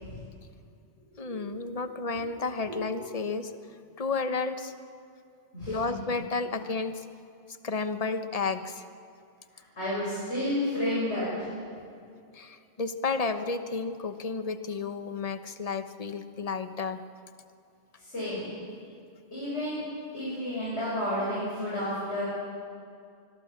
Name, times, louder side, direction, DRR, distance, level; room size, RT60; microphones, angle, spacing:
voice 1, 1.2-3.5 4.0-4.7 5.7-7.0 7.6-8.8 12.3-17.0, left 4 dB, 35° left, 9 dB, 1.1 m, -32 dB
voice 2, 5.5-6.0 9.5-11.5 18.0-18.5 19.3-19.8 20.1-22.2, left 1 dB, 65° left, -8 dB, 7.5 m, -31 dB
25.5 x 21.0 x 7.4 m, 2.3 s
omnidirectional pair, 1.2 m